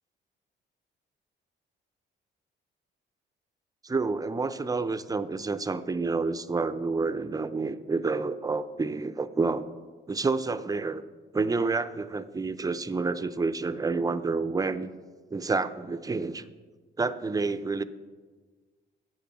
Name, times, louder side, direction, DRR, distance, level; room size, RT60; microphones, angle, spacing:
voice 1, 3.8-9.7 10.1-11.0 11.3-14.9 15.3-16.4 17.0-17.8, right 4 dB, 20° right, 12 dB, 0.6 m, -29 dB
10.0 x 8.0 x 6.1 m, 1.4 s
cardioid pair, 90°, 20 cm